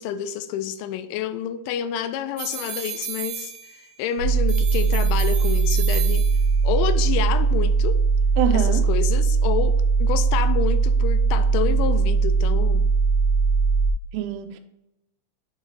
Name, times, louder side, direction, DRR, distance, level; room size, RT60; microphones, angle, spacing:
voice 1, 0.0-3.5 4.0-6.3 6.6-8.0 8.5-9.7 10.0-12.9, left 9 dB, 85° left, 10 dB, 2.9 m, -28 dB
sound 1, 2.4-4.0 4.5-6.7, right 8 dB, 65° right, 2.6 m, -34 dB
sound 2, 4.2-13.9, right 4 dB, 65° left, 2.4 m, -20 dB
voice 2, 8.4-8.8 14.1-14.6, right 9 dB, 90° right, 8 dB, 3.1 m, -25 dB
8.6 x 3.2 x 5.0 m, 0.88 s
omnidirectional pair, 5.5 m